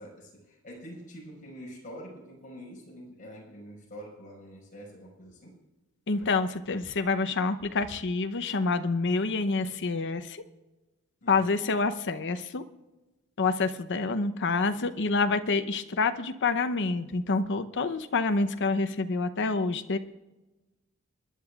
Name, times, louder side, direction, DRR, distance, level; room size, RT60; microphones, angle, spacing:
voice 1, 0.0-5.5 11.2-11.6 14.9-15.4, equal, 35° left, -3 dB, 5.3 m, -46 dB
voice 2, 6.1-10.4 11.3-12.6 13.4-20.0, left 3 dB, 55° left, 9 dB, 0.8 m, -27 dB
28.5 x 10.5 x 2.4 m, 1.1 s
head